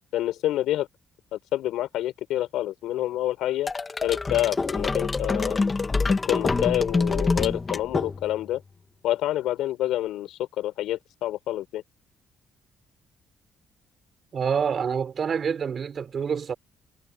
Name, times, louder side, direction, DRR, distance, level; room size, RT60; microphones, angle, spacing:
voice 1, 0.1-0.9 1.3-3.7 4.0-5.6 6.2-8.6 9.0-11.8, left 14 dB, 90° left, 4.9 m, -27 dB
sound 1, 3.7-8.5, left 3 dB, 30° left, 1.6 m, -26 dB
voice 2, 14.3-16.5, right 7 dB, 50° right, 3.8 m, -27 dB
cardioid pair, 90°, 0 cm